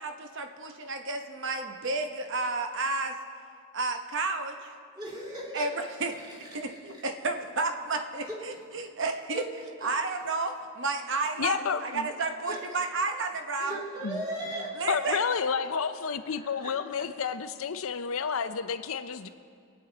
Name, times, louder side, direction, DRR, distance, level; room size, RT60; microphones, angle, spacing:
voice 1, 0.0-3.1 3.7-4.7 5.5-6.1 6.5-9.4 9.8-13.8 14.8-15.2, right 3 dB, 55° right, 5 dB, 1.0 m, -31 dB
voice 2, 5.0-5.7 6.2-7.0 8.3-8.4 8.7-8.8 9.3-9.5 9.8-9.9 12.5-12.6 13.6-15.0 16.3-16.7, right 1 dB, 20° right, -6 dB, 2.9 m, -38 dB
voice 3, 11.4-12.1 14.0-14.2 14.9-19.3, left 6 dB, 65° left, 11 dB, 0.6 m, -30 dB
23.0 x 9.2 x 4.1 m, 2.3 s
head